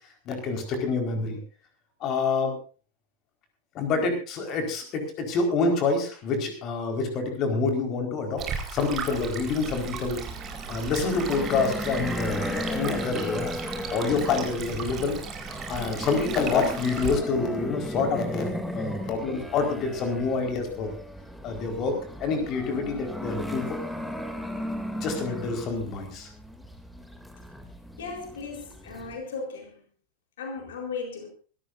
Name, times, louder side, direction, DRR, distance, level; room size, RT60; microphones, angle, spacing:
voice 1, 0.3-1.4 2.0-2.6 3.7-8.4 8.7-10.2 10.7-13.6 13.9-15.2 15.7-21.0 21.4-23.6 24.9-26.3, left 4 dB, 35° left, 5 dB, 4.5 m, -27 dB
Stream, 8.4-17.2, right 6 dB, 30° right, 4.4 m, -36 dB
sound 1, 9.4-29.2, equal, 5° left, 2.7 m, -36 dB
voice 2, 28.0-29.7 30.4-31.3, left 4 dB, 60° left, 4 dB, 4.1 m, -36 dB
25.0 x 14.0 x 2.6 m, 0.38 s
figure-of-eight pair, 90°, 0 cm